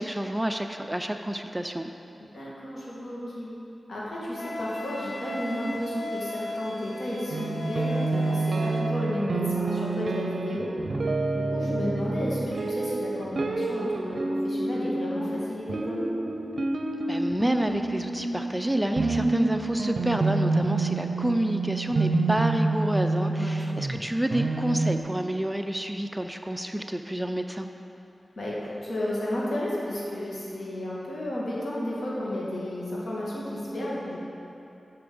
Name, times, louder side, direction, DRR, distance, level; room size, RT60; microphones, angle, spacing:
voice 1, 0.0-1.9 17.1-27.7, right 1 dB, 10° right, 6 dB, 0.5 m, -29 dB
voice 2, 2.2-3.5 3.9-10.7 11.3-16.2 23.3-23.8 28.4-34.2, left 1 dB, 75° left, -6 dB, 2.3 m, -32 dB
Wind instrument woodwind instrument, 4.3-8.9, left 1 dB, 50° left, 1.7 m, -36 dB
sound 1, 7.3-25.0, right 3 dB, 70° right, 0.6 m, -28 dB
7.3 x 5.8 x 7.0 m, 2.9 s
cardioid pair, 50°, 0 cm